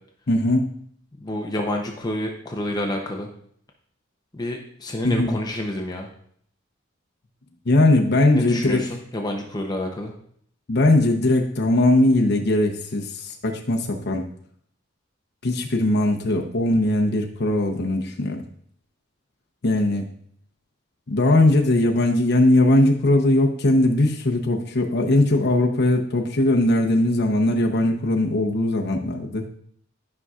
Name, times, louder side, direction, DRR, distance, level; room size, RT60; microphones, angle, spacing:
voice 1, 0.3-0.6 5.0-5.4 7.7-8.9 10.7-14.3 15.4-18.4 19.6-20.1 21.1-29.5, left 1 dB, 55° left, 1 dB, 0.8 m, -20 dB
voice 2, 1.2-3.3 4.3-6.1 8.3-10.1, left 1 dB, 20° left, 2 dB, 0.7 m, -29 dB
12.0 x 5.5 x 2.4 m, 0.64 s
head